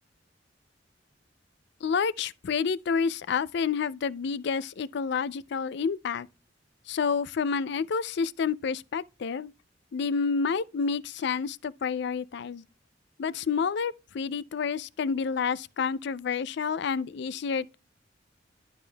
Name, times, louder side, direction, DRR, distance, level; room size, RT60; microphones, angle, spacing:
voice 1, 1.8-6.3 6.9-9.5 9.9-12.6 13.2-17.8, left 5 dB, 60° left, 0.4 m, -29 dB
12.0 x 5.0 x 2.2 m
head